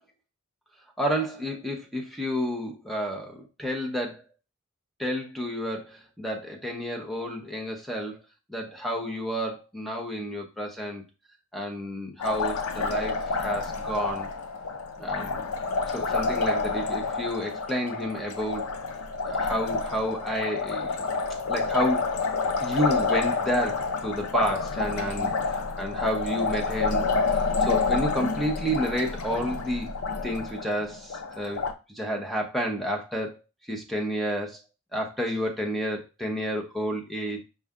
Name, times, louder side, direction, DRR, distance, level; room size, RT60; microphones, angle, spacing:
voice 1, 1.0-4.2 5.0-8.2 8.5-11.0 11.5-14.3 15.0-15.4 15.9-18.6 19.2-21.0 21.5-22.1 22.6-25.3 25.8-27.1 27.6-29.9 30.2-31.6 31.9-33.4 33.7-34.6 34.9-37.4, equal, ahead, 1 dB, 0.8 m, -30 dB
Liquid, 12.2-31.7, left 4 dB, 90° left, 0.5 m, -28 dB
5.4 x 2.4 x 3.6 m, 0.29 s
head